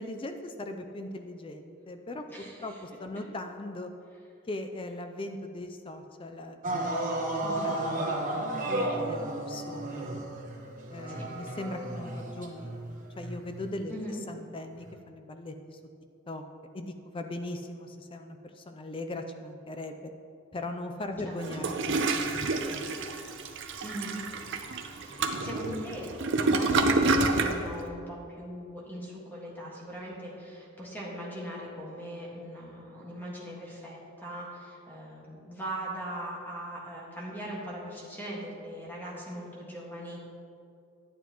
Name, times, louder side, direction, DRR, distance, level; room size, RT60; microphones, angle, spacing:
voice 1, 0.0-3.9 4.4-6.6 6.9-7.2 7.6-8.0 8.3-10.2 10.9-13.9 14.3-15.8 16.3-16.4 16.7-20.1 20.5-23.3 25.1-25.4, left 1 dB, 25° left, 6 dB, 0.5 m, -40 dB
voice 2, 2.3-2.8 7.4-7.7 11.1-11.3 13.9-14.2 21.2-21.7 23.8-24.2 25.0-26.1 26.4-40.2, right 1 dB, 10° left, -5 dB, 1.7 m, -40 dB
sound 1, 6.6-13.8 14.9-15.0, right 1 dB, 40° right, 1.2 m, -33 dB
Toilet flush, 21.4-27.6, right 3 dB, 60° right, 0.6 m, -28 dB
11.0 x 9.2 x 3.0 m, 2.5 s
head